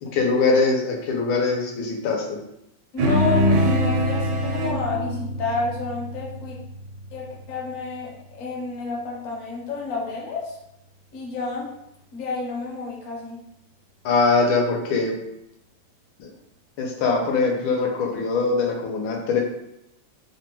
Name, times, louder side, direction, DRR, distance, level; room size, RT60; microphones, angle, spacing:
voice 1, 0.0-2.4 14.0-15.2 16.2-16.3 16.8-19.4, left 4 dB, 85° left, 0 dB, 1.4 m, -22 dB
voice 2, 2.9-6.6 7.1-10.6 11.1-11.7 12.1-13.4, left 4 dB, 55° left, -3 dB, 0.9 m, -30 dB
sound 1, 3.0-7.7, equal, 75° right, 1.2 m, -24 dB
3.5 x 2.2 x 2.9 m, 0.82 s
omnidirectional pair, 2.2 m